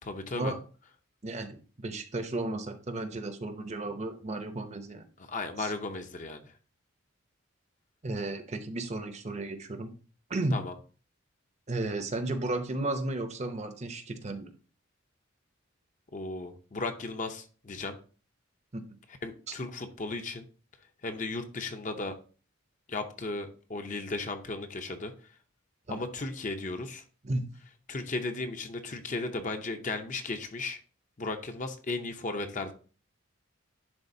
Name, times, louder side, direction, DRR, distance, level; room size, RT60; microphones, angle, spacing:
voice 1, 0.0-0.5 5.3-6.4 10.5-10.7 16.1-18.0 19.2-20.4 21.0-22.2 22.9-25.1 25.9-27.0 27.9-30.8 31.2-32.7, left 3 dB, 35° left, 7 dB, 0.6 m, -35 dB
voice 2, 1.2-5.1 5.6-5.7 8.0-9.9 10.3-10.6 11.7-14.5 18.7-18.8 19.5-19.6 25.9-26.0 27.2-27.4, right 2 dB, 30° right, 8 dB, 0.6 m, -34 dB
10.5 x 3.8 x 2.7 m, 0.38 s
head